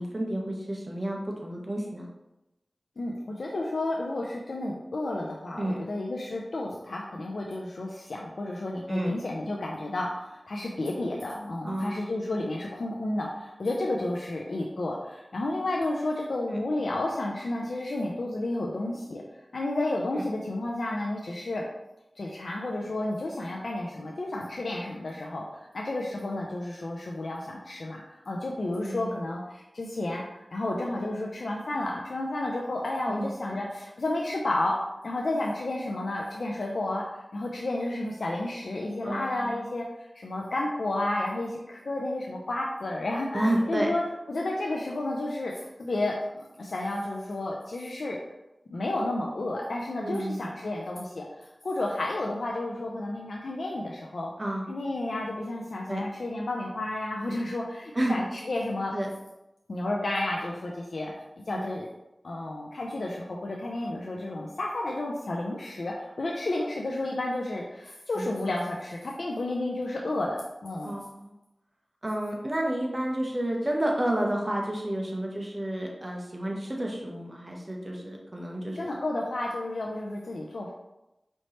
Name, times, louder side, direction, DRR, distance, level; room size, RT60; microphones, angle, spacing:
voice 1, 0.0-2.1 5.6-5.8 8.9-9.1 11.6-12.0 16.5-16.6 20.1-20.2 28.8-29.2 33.1-33.3 39.0-39.6 43.3-43.9 50.0-50.6 54.4-54.7 55.9-56.0 57.9-58.2 58.9-59.1 61.5-61.6 68.1-68.3 70.8-71.3 72.0-78.8, right 1 dB, 35° right, -1 dB, 0.9 m, -30 dB
voice 2, 3.0-19.2 19.5-21.7 22.2-34.7 35.0-44.0 44.3-48.2 48.7-54.3 54.7-58.9 59.7-61.1 61.5-61.9 62.2-71.0 78.7-80.7, left 2 dB, 85° left, -2 dB, 0.4 m, -31 dB
4.3 x 2.8 x 3.1 m, 0.94 s
wide cardioid pair, 55°, 0 cm